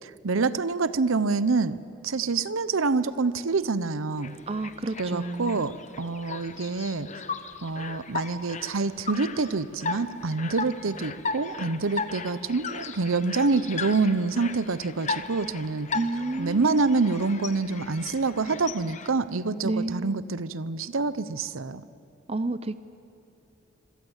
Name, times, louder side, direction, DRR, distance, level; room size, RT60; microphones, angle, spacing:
voice 1, 0.0-1.8 2.0-4.3 5.0-5.7 6.0-7.1 7.6-15.9 16.4-21.8, right 4 dB, 75° right, 15 dB, 0.8 m, -26 dB
sound 1, 4.2-19.1, left 4 dB, 35° left, 1.0 m, -37 dB
voice 2, 4.5-5.6 15.9-16.8 19.6-20.2 22.3-22.7, right 2 dB, 30° right, 13 dB, 0.6 m, -30 dB
26.0 x 24.0 x 8.1 m, 2.8 s
head